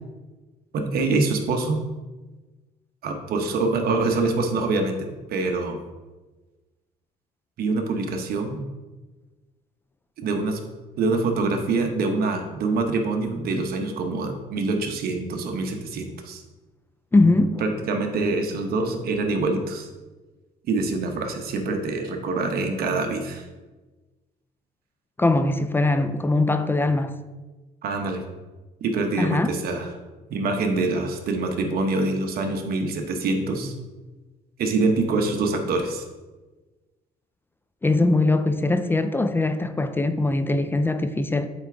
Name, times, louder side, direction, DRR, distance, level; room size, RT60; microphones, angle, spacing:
voice 1, 0.7-1.8 3.0-5.8 7.6-8.6 10.2-10.6 11.0-16.4 17.6-19.9 20.7-23.4 27.8-28.2 28.8-29.9 30.3-33.7 34.6-36.0, right 3 dB, 65° right, 1.0 m, -25 dB
voice 2, 17.1-17.6 25.2-27.2 29.2-29.5 37.8-41.5, left 2 dB, 15° left, 0.3 m, -21 dB
8.0 x 3.4 x 3.8 m
cardioid pair, 110°, 17 cm